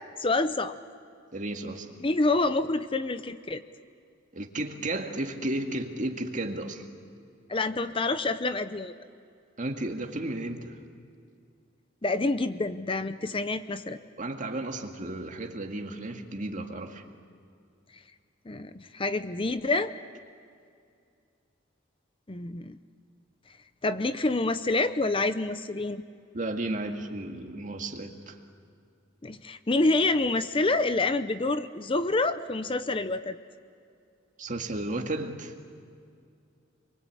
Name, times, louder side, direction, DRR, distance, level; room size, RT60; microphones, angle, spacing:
voice 1, 0.2-0.8 2.0-3.6 7.5-8.9 12.0-14.0 18.5-19.9 22.3-22.8 23.8-26.0 29.2-33.4, left 2 dB, 30° left, 11 dB, 0.7 m, -27 dB
voice 2, 1.3-1.9 4.3-6.8 9.6-10.8 14.2-17.0 26.3-28.4 34.4-35.5, right 2 dB, 40° right, 3 dB, 2.1 m, -33 dB
27.0 x 23.0 x 8.5 m, 2.4 s
head